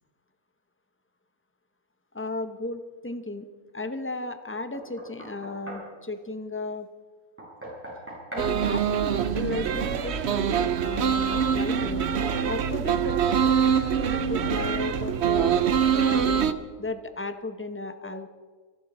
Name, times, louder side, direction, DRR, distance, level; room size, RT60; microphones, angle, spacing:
voice 1, 2.1-3.5 3.7-6.9 8.3-12.0 12.4-15.6 15.9-16.4 16.8-18.3, left 2 dB, 10° left, 9 dB, 0.7 m, -35 dB
Knock, 4.7-5.9 7.4-8.5 10.6-10.7 11.3-11.5 12.2-12.4, right 1 dB, 10° right, 5.9 m, -40 dB
sound 1, 8.4-16.5, right 7 dB, 55° right, 0.9 m, -24 dB
27.0 x 12.0 x 4.3 m, 1.5 s
omnidirectional pair, 1.5 m